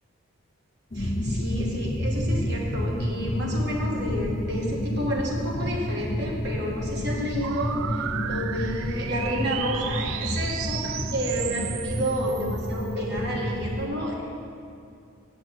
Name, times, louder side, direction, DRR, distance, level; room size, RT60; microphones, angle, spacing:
sound 1, 0.9-13.9, left 1 dB, 30° left, 0.7 m, -30 dB
voice 1, 0.9-14.2, equal, 50° right, -2 dB, 1.7 m, -30 dB
sound 2, 7.4-12.9, right 11 dB, 70° right, 0.3 m, -35 dB
8.7 x 6.2 x 7.7 m, 2.6 s
head